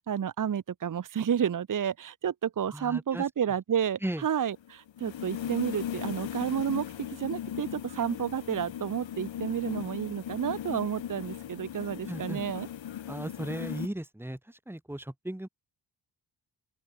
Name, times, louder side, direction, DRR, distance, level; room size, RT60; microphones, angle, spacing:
voice 1, 0.0-12.7, right 8 dB, 45° right, 1.1 m, -31 dB
voice 2, 2.7-3.3 4.0-4.2 12.1-12.4 13.1-15.5, right 1 dB, 5° right, 3.8 m, -36 dB
sound 1, 4.2-13.9, left 10 dB, 90° left, 5.3 m, -38 dB
open air
cardioid pair, 110°, 44 cm